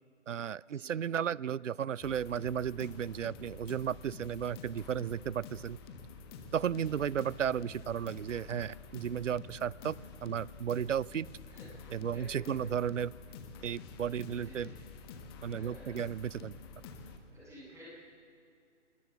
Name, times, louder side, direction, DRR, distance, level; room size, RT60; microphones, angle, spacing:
voice 1, 0.3-5.8 6.5-11.3 11.9-13.1 13.6-14.7 15.4-16.5, right 8 dB, 80° right, 23 dB, 0.5 m, -34 dB
sound 1, 2.0-17.2, left 4 dB, 20° left, 1.3 m, -49 dB
voice 2, 12.1-12.7 14.2-14.7 15.5-16.0 17.3-17.9, right 1 dB, 10° right, -6 dB, 7.7 m, -53 dB
26.0 x 21.0 x 7.4 m, 2.4 s
figure-of-eight pair, 140°, 37 cm